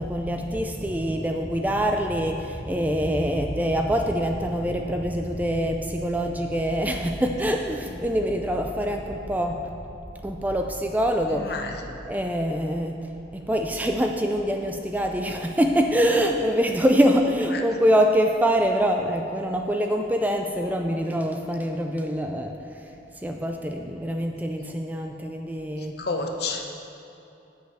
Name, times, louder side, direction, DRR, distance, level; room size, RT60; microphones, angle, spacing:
voice 1, 0.0-9.7 10.2-11.5 12.0-22.9 23.2-26.0, equal, 10° right, 3 dB, 0.3 m, -25 dB
voice 2, 11.3-12.0 17.5-17.6 25.8-26.7, left 3 dB, 55° left, 3 dB, 0.8 m, -31 dB
8.2 x 6.2 x 5.6 m, 2.7 s
head